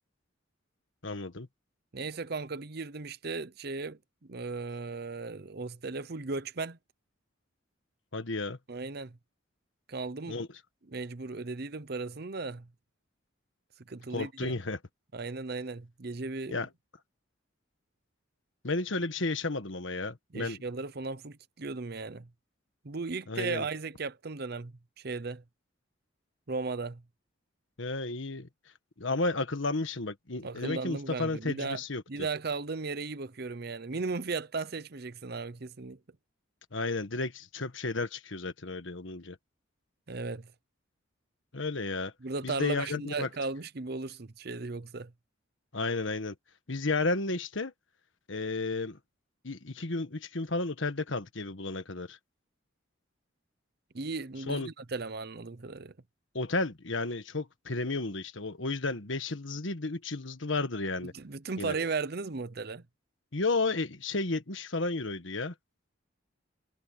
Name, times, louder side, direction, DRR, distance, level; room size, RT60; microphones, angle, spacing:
voice 1, 1.0-1.5 8.1-8.6 10.3-10.5 14.1-14.8 16.5-16.7 18.6-20.6 23.3-23.6 27.8-28.5 29.0-32.0 36.7-39.4 41.5-42.1 42.4-43.3 45.7-46.3 46.7-47.7 48.3-49.0 49.4-52.2 54.5-54.7 56.3-61.1 61.6-61.7 63.3-65.5, left 3 dB, 70° left, 1.5 m, -32 dB
voice 2, 1.9-4.0 4.3-6.8 8.7-9.2 9.9-10.4 10.9-12.7 13.9-14.6 15.1-16.6 20.3-22.3 22.8-25.4 26.5-27.0 30.4-31.8 32.1-36.0 40.1-40.5 42.2-45.1 53.9-55.9 61.1-62.8, right 3 dB, 50° right, 0.8 m, -36 dB
head